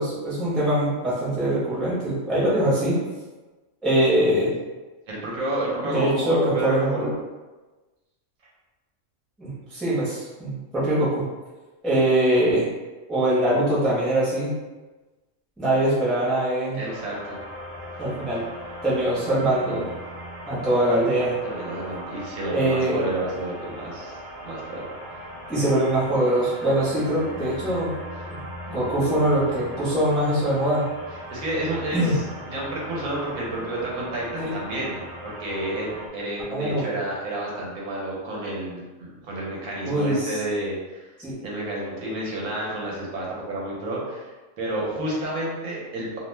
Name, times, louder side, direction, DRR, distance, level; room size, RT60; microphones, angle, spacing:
voice 1, 0.0-3.0 3.8-4.5 5.8-7.1 9.4-11.2 11.8-12.6 13.1-14.5 15.6-16.8 18.0-18.4 18.8-19.9 20.5-21.4 22.5-23.1 25.5-27.9 28.2-28.4 28.7-30.8 31.9-32.2 34.4-34.5 36.5-36.9 39.8-40.3 41.2-41.3, right 1 dB, ahead, -9 dB, 0.6 m, -23 dB
voice 2, 5.1-7.1 16.7-17.4 21.4-24.1 24.4-25.2 28.1-28.3 31.3-44.3 44.6-46.2, right 1 dB, 80° right, -4 dB, 1.1 m, -30 dB
sound 1, 16.8-36.1, equal, 60° right, 0.6 m, -39 dB
2.8 x 2.0 x 3.1 m, 1.2 s
omnidirectional pair, 1.4 m